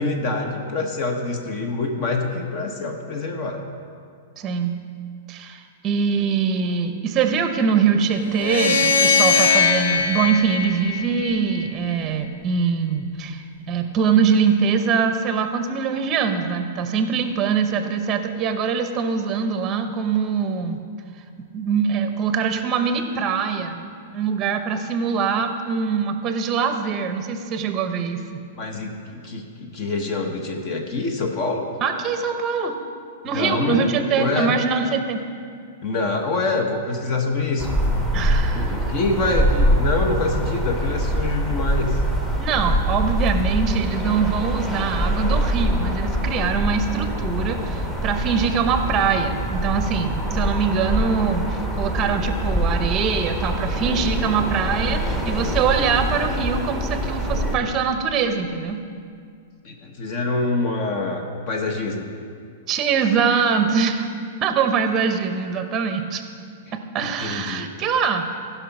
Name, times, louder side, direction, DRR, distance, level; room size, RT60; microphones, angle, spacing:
voice 1, 0.0-3.6 28.6-31.7 33.3-34.5 35.8-37.7 38.5-42.0 59.6-62.1 67.0-67.7, left 3 dB, 40° left, 3 dB, 1.0 m, -25 dB
voice 2, 4.4-4.8 5.3-20.8 21.5-23.9 24.1-28.4 31.8-32.8 33.2-35.3 38.1-38.9 42.4-58.8 62.7-64.1 64.4-66.2 66.7-68.2, right 6 dB, 25° right, 8 dB, 0.7 m, -23 dB
sound 1, 8.3-11.6, left 5 dB, 90° left, 1.1 m, -20 dB
sound 2, 37.6-57.6, equal, 10° left, 1.1 m, -24 dB
15.5 x 5.6 x 5.9 m, 2.2 s
hypercardioid pair, 150°, 0 cm